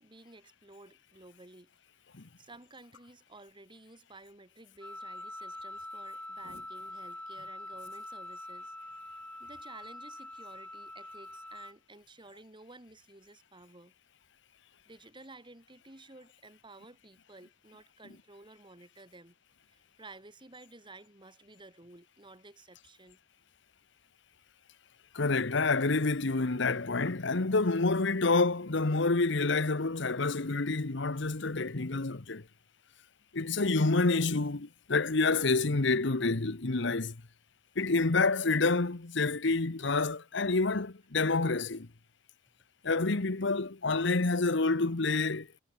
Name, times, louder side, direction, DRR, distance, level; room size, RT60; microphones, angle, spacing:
voice 1, 0.0-1.7 2.2-13.9 14.9-19.3 19.7-23.2, right 2 dB, 25° right, 3.0 m, -53 dB
Wind instrument woodwind instrument, 4.8-11.7, left 1 dB, 5° left, 1.1 m, -44 dB
voice 2, 25.1-32.4 33.3-37.2 37.8-41.9 42.8-45.6, left 3 dB, 65° left, 1.1 m, -28 dB
head